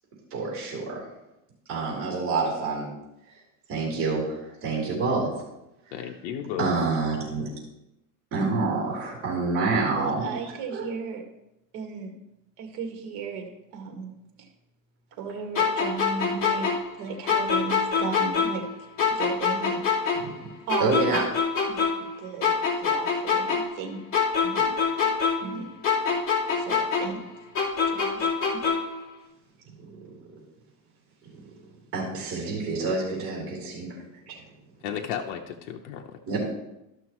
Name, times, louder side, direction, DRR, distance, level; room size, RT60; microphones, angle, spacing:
voice 1, 0.3-1.0 1.7-2.9 3.7-5.3 6.6-7.5 8.3-10.3 10.7-10.9 20.2-20.5 20.8-21.2 31.9-34.0 34.3-34.4 36.3-36.4, right 3 dB, 35° right, -5 dB, 3.5 m, -27 dB
voice 2, 5.9-6.7 34.8-36.2, left 9 dB, 70° left, 2 dB, 0.9 m, -33 dB
voice 3, 9.9-11.2 11.7-12.1 12.6-14.1 15.2-16.7 17.0-18.6 19.1-19.8 20.7-21.3 21.7-24.0 24.4-25.1 25.4-25.7 26.6-27.2 27.8-28.3, right 5 dB, 55° right, 3 dB, 1.9 m, -35 dB
sound 1, 15.5-18.7 19.0-22.1 22.4-25.6 25.8-29.0, left 5 dB, 35° left, 2.5 m, -25 dB
13.5 x 6.3 x 3.1 m, 0.89 s
supercardioid pair, 155°, 39 cm